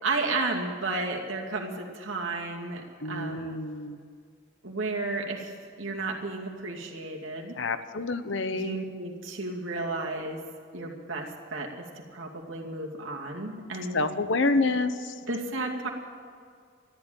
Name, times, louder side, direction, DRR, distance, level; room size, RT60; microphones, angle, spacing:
voice 1, 0.0-3.7 4.6-7.6 8.5-10.4 10.7-14.1 15.3-15.9, right 3 dB, 85° right, 0 dB, 2.4 m, -33 dB
voice 2, 3.0-4.0 7.6-8.8 13.9-15.1, left 3 dB, 70° left, 10 dB, 0.9 m, -28 dB
13.5 x 11.5 x 9.0 m, 2.2 s
head